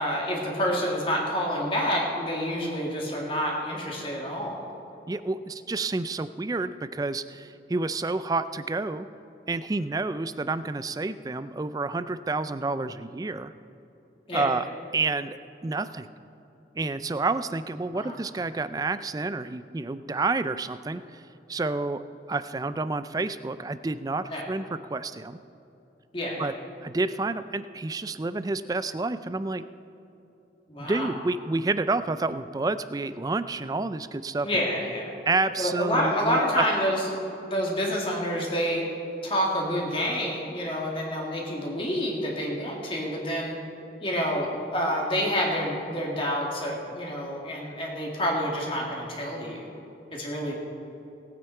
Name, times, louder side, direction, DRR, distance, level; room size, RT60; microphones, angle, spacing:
voice 1, 0.0-4.7 14.3-14.5 17.9-18.2 24.3-24.4 26.1-26.5 30.7-31.1 34.4-35.1 35.6-38.8 39.2-43.5 44.0-49.7 50.1-50.5, equal, 30° left, -2 dB, 2.1 m, -28 dB
voice 2, 5.1-9.1 9.5-13.5 14.3-16.1 16.7-21.2 21.5-22.0 22.3-25.4 26.4-26.5 26.8-29.6 30.8-34.5 35.3-36.7, right 3 dB, 20° right, 13 dB, 0.3 m, -29 dB
18.5 x 9.0 x 4.5 m, 2.9 s
head